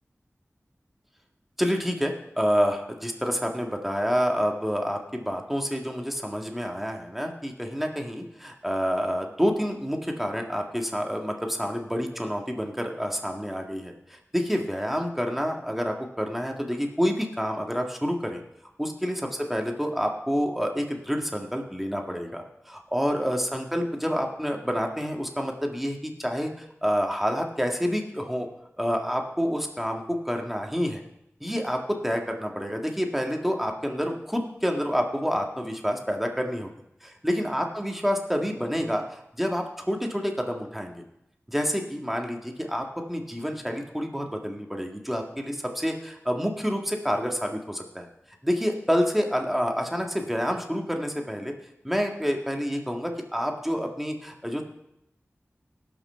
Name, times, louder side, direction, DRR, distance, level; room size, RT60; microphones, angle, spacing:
voice 1, 1.6-18.4 18.8-28.5 28.8-31.0 31.4-36.7 37.0-41.0 41.5-48.1 48.4-51.5 51.8-54.6, equal, 5° right, 2 dB, 1.9 m, -28 dB
18.0 x 6.1 x 4.4 m, 0.81 s
cardioid pair, 40°, 5 cm